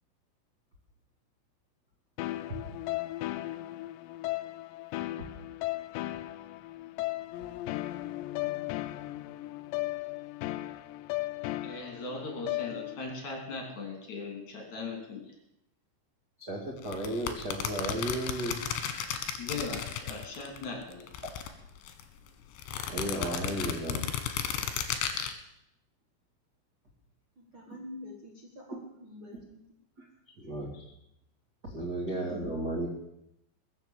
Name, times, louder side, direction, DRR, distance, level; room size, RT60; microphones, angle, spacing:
sound 1, 2.2-13.2, left 17 dB, 90° left, 2.5 m, -36 dB
voice 1, 7.4-7.7 10.4-10.5 16.4-18.6 22.9-24.1 30.4-30.8 31.6-32.9, right 1 dB, 50° right, 1.2 m, -34 dB
voice 2, 11.6-15.2 19.4-21.1, left 3 dB, 40° left, 3.8 m, -39 dB
sound 2, 16.8-20.6 20.9-22.0 22.6-25.3, left 9 dB, 70° left, 3.3 m, -34 dB
voice 3, 27.3-29.6 30.0-30.1 32.0-32.3, left 2 dB, 75° right, 1.2 m, -47 dB
21.5 x 7.9 x 7.3 m
omnidirectional pair, 5.9 m